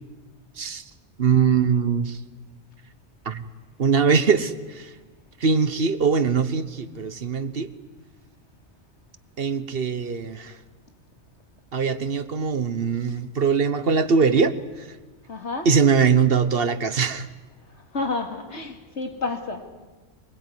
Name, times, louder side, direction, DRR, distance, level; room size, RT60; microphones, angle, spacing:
voice 1, 1.2-2.2 3.3-3.4 3.8-4.9 5.4-7.7 9.4-10.5 11.7-14.6 15.6-17.3, right 5 dB, 60° right, 13 dB, 1.3 m, -22 dB
voice 2, 15.3-15.7 17.9-19.7, left 3 dB, 85° left, 5 dB, 2.8 m, -30 dB
23.0 x 21.5 x 9.6 m, 1.3 s
omnidirectional pair, 1.1 m